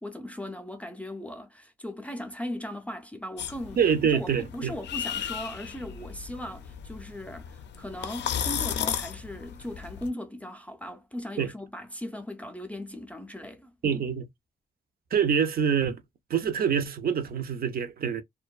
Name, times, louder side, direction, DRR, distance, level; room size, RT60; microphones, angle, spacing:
voice 1, 0.0-3.8 4.1-14.0, left 1 dB, 5° left, 0.4 m, -38 dB
sound 1, 3.4-10.1, left 8 dB, 75° left, 0.4 m, -35 dB
voice 2, 3.8-4.7 11.4-11.5 13.8-14.2 15.1-16.0 16.3-18.2, right 7 dB, 55° right, 0.5 m, -25 dB
2.5 x 2.2 x 2.3 m
wide cardioid pair, 125°, 18 cm